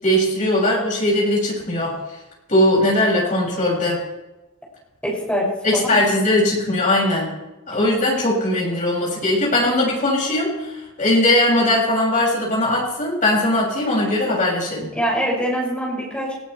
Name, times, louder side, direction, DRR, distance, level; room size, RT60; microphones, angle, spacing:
voice 1, 0.0-1.9 2.5-4.0 5.6-7.3 7.7-14.9, left 1 dB, 35° left, -4 dB, 6.9 m, -19 dB
voice 2, 5.0-6.0 14.9-16.3, equal, 5° left, -5 dB, 6.8 m, -24 dB
19.0 x 17.5 x 3.4 m, 1.0 s
head